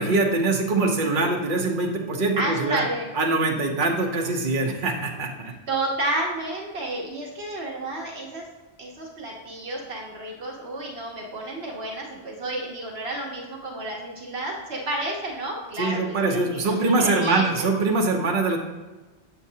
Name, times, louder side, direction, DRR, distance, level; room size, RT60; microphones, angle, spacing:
voice 1, 0.0-2.8 3.2-5.5 15.8-18.6, right 3 dB, 50° right, 1 dB, 1.0 m, -23 dB
voice 2, 2.3-3.1 5.7-8.5 8.8-17.7, right 1 dB, 70° right, -2 dB, 1.3 m, -31 dB
7.3 x 7.1 x 2.8 m, 1.2 s
omnidirectional pair, 1.1 m